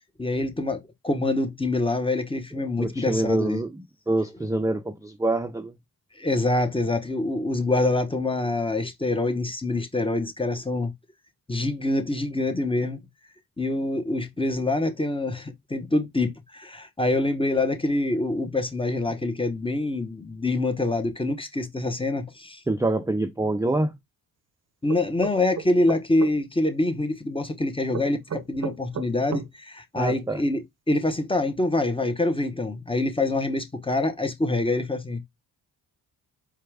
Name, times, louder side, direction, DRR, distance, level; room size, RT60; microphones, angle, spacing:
voice 1, 0.2-3.6 6.2-10.9 11.5-13.0 13.6-22.6 24.8-35.2, left 2 dB, 15° left, 0.9 m, -25 dB
voice 2, 2.8-5.7 22.7-23.9 29.9-30.4, right 2 dB, 10° right, 0.5 m, -26 dB
sound 1, 24.9-26.3 27.9-29.5, right 6 dB, 40° right, 0.7 m, -33 dB
4.6 x 2.3 x 3.4 m
cardioid pair, 60°, 41 cm